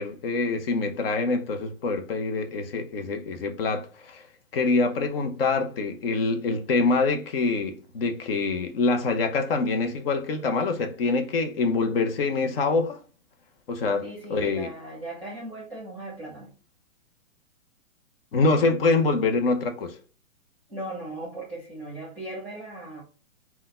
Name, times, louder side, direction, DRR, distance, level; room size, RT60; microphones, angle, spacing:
voice 1, 0.0-4.2 4.5-13.0 13.7-14.0 14.3-14.7 18.3-20.0, left 3 dB, 45° left, 0.6 m, -25 dB
voice 2, 14.0-16.5 20.7-23.0, right 1 dB, ahead, 1.1 m, -38 dB
3.8 x 2.2 x 2.4 m
hypercardioid pair, 155°, 42 cm